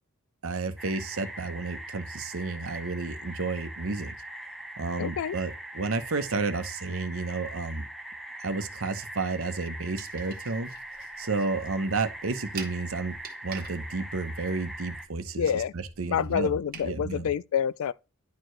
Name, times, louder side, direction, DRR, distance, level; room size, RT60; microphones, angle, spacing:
voice 1, 0.4-4.1 4.8-7.9 8.4-10.7 11.2-13.1 13.4-16.5 16.8-17.3, right 3 dB, 70° right, 0.8 m, -31 dB
sound 1, 0.8-15.1, right 1 dB, ahead, 0.5 m, -42 dB
voice 2, 5.0-5.4 15.4-15.7 16.1-17.9, left 8 dB, 75° left, 0.3 m, -27 dB
sound 2, 9.9-16.9, right 7 dB, 45° right, 1.3 m, -47 dB
10.5 x 4.5 x 3.2 m
head